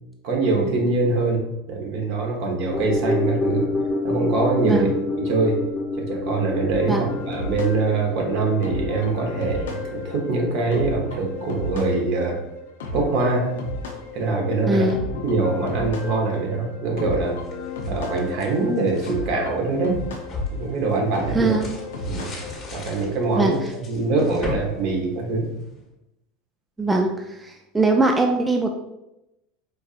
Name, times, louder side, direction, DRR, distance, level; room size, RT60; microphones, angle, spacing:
voice 1, 0.2-1.4 1.7-3.7 4.0-4.9 5.2-5.6 6.0-12.4 12.9-13.5 14.1-14.9 15.2-17.4 17.9-20.0 20.5-21.5 22.0-22.3 22.7-23.6 23.9-25.5, right 3 dB, 65° right, 0 dB, 1.0 m, -23 dB
sound 1, 2.7-11.2 11.5-11.6, left 3 dB, 5° left, 0.9 m, -28 dB
voice 2, 4.6-5.0 6.9-7.1 14.7-15.0 21.3-21.7 23.4-23.5 26.8-28.7, right 2 dB, 15° right, 3 dB, 0.3 m, -21 dB
sound 2, 6.7-22.7, left 2 dB, 85° left, 0.6 m, -34 dB
sound 3, 17.2-19.2 19.7-25.8, left 3 dB, 35° left, 1.1 m, -36 dB
4.6 x 2.6 x 2.4 m, 0.90 s
hypercardioid pair, 100°, 0 cm